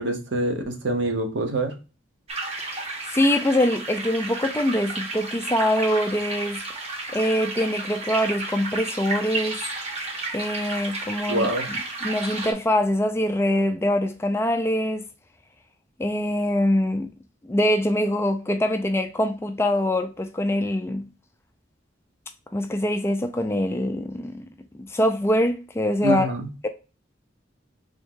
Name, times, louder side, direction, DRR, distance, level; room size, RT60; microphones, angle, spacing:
voice 1, 0.0-1.8 11.3-11.7 26.0-26.5, right 1 dB, 70° right, 0.8 m, -25 dB
sound 1, 2.3-12.5, right 2 dB, 30° right, 0.8 m, -32 dB
voice 2, 3.1-6.6 7.1-9.6 10.3-15.0 16.0-17.1 17.4-21.1 22.5-24.5 24.8-26.3 26.6-26.7, left 1 dB, 15° left, 0.3 m, -24 dB
3.5 x 3.0 x 3.6 m
head